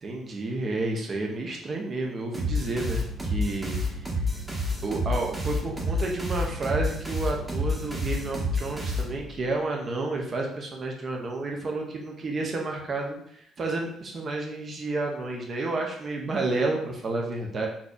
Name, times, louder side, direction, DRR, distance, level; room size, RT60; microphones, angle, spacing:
voice 1, 0.0-4.1 4.8-17.7, right 2 dB, 40° right, 1 dB, 0.6 m, -31 dB
sound 1, 2.3-9.5, left 1 dB, 15° right, 1.0 m, -29 dB
3.9 x 2.8 x 2.3 m, 0.67 s
figure-of-eight pair, 45°, 0 cm